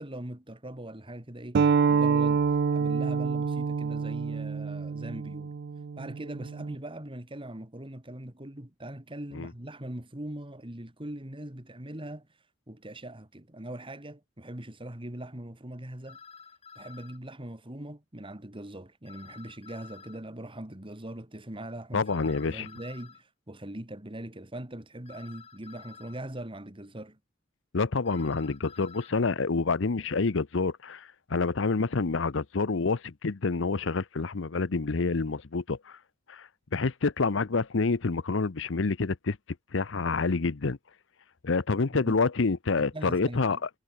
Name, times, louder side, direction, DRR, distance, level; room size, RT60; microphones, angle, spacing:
voice 1, 0.0-2.4 2.7-5.5 6.0-12.3 12.7-16.2 16.8-27.2 41.9-42.2 42.9-43.6, right 1 dB, 25° right, 2.5 m, -41 dB
sound 1, 1.5-6.7, right 5 dB, 60° right, 0.4 m, -27 dB
sound 2, 16.1-17.2 19.1-20.2 22.1-23.2 25.1-26.2 28.1-29.1, left 6 dB, 35° left, 2.2 m, -50 dB
voice 2, 21.9-22.7 27.7-36.0 36.3-39.4 39.7-40.8 41.4-43.7, left 4 dB, 70° left, 0.8 m, -28 dB
head